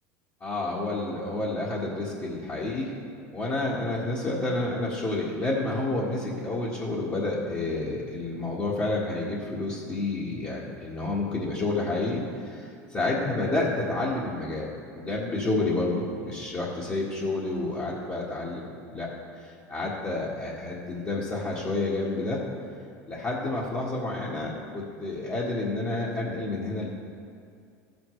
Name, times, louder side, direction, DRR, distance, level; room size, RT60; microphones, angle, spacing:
voice 1, 0.4-2.9 3.3-14.7 14.9-19.1 19.4-22.4 23.1-26.9, left 2 dB, 30° left, -7 dB, 1.8 m, -29 dB
15.0 x 7.1 x 3.3 m, 2.3 s
supercardioid pair, 105°, 9 cm